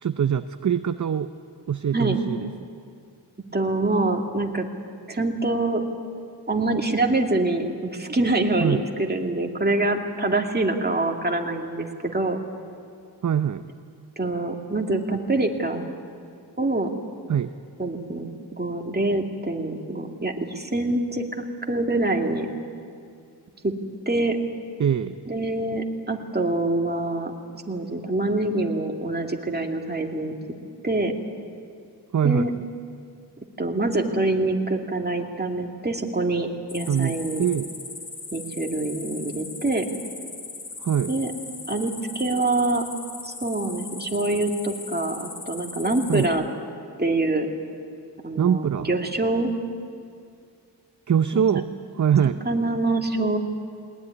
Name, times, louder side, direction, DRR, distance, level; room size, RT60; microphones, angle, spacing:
voice 1, 0.0-1.3 1.7-2.5 8.6-8.8 13.2-13.6 17.3-17.5 24.8-25.2 32.1-32.6 36.9-37.7 40.8-41.1 46.1-46.3 48.4-48.9 51.1-51.7 52.0-52.4, right 8 dB, 45° right, 11 dB, 0.6 m, -23 dB
voice 2, 3.5-4.7 5.1-5.8 6.5-12.4 14.2-15.9 16.6-16.9 17.8-22.5 23.6-23.7 24.1-24.4 25.3-27.3 27.7-30.3 30.8-31.1 32.2-32.5 33.6-37.4 38.3-39.9 41.1-41.3 41.7-42.8 43.2-46.4 47.0-47.5 48.2-49.5 51.3-51.5 52.5-53.4, right 2 dB, 25° right, 2 dB, 2.4 m, -25 dB
sound 1, 36.7-46.3, left 3 dB, 55° left, 3.4 m, -38 dB
20.5 x 19.5 x 9.7 m, 2.3 s
wide cardioid pair, 70°, 41 cm